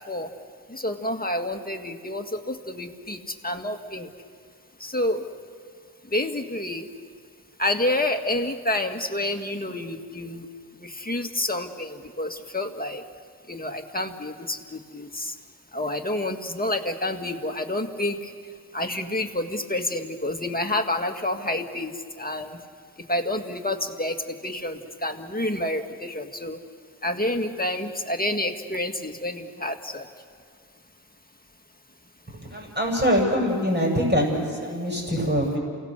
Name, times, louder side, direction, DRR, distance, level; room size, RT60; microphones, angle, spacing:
voice 1, 0.7-3.2 3.4-4.1 4.8-5.2 6.1-6.8 7.6-10.4 10.8-13.0 13.5-14.6 14.9-15.3 15.7-18.3 18.7-22.6 23.1-26.6 27.0-30.1, left 1 dB, 25° left, 5 dB, 1.8 m, -28 dB
voice 2, 32.4-35.6, equal, 25° right, -1 dB, 7.2 m, -24 dB
28.5 x 18.0 x 6.8 m, 2.1 s
cardioid pair, 45°, 38 cm